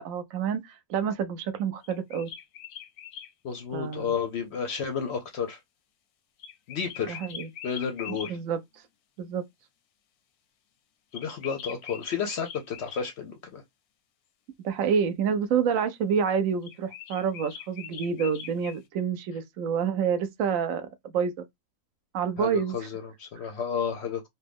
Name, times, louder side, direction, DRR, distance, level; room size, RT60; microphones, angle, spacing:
voice 1, 0.0-2.3 3.7-4.1 7.1-7.5 8.1-8.6 9.2-9.4 14.6-21.5 22.1-22.8, right 7 dB, 70° right, 0.9 m, -28 dB
sound 1, 1.8-3.3 6.4-8.3 11.1-13.1 16.6-18.8, left 9 dB, 90° left, 1.1 m, -42 dB
voice 2, 3.4-5.6 6.7-7.2 7.6-8.4 11.1-13.6 22.4-24.3, left 6 dB, 65° left, 0.7 m, -32 dB
2.9 x 2.2 x 3.4 m
omnidirectional pair, 1.5 m